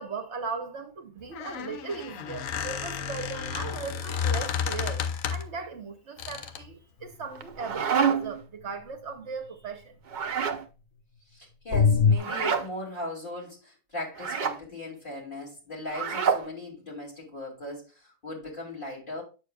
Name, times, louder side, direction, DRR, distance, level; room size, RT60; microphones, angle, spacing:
voice 1, 0.0-10.0, right 5 dB, 60° right, 1.1 m, -38 dB
Squeak, 1.2-5.6 6.2-6.7, left 7 dB, 80° left, 1.1 m, -32 dB
sound 1, 7.0-7.3 11.7-12.2, left 5 dB, 60° left, 0.6 m, -19 dB
sound 2, 7.4-8.4 10.1-10.6 12.2-12.7 14.2-14.6 15.9-16.5, right 7 dB, 45° right, 0.7 m, -27 dB
voice 2, 11.3-19.2, left 1 dB, 40° left, 2.9 m, -38 dB
8.2 x 6.7 x 2.3 m
omnidirectional pair, 1.4 m